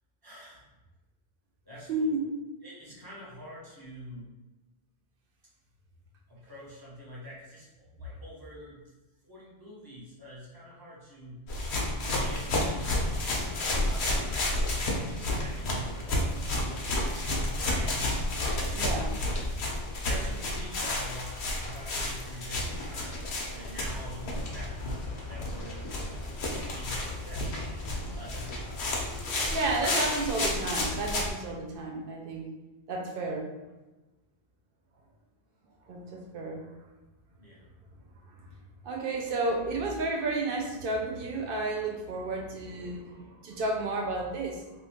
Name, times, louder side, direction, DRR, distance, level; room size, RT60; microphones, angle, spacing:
voice 1, 0.2-0.6 1.6-2.0 2.6-4.3 6.3-8.8 9.2-11.5 12.0-13.2 13.8-17.1 17.6-18.2 18.8-19.3 20.0-23.2 23.5-25.9 26.5-27.6 28.1-29.1 29.9-30.0 37.4-37.7 39.7-39.8, equal, 20° right, -6 dB, 1.0 m, -45 dB
voice 2, 1.9-2.3 18.7-19.1 29.5-32.5 32.9-33.5 35.9-36.6 38.3-38.5 38.8-44.6, right 2 dB, 60° right, 0 dB, 0.8 m, -32 dB
sound 1, 11.5-31.3, left 1 dB, 80° left, 0.9 m, -31 dB
sound 2, 23.8-30.0, left 3 dB, 55° left, 0.8 m, -42 dB
3.0 x 2.4 x 3.5 m, 1.1 s
omnidirectional pair, 1.1 m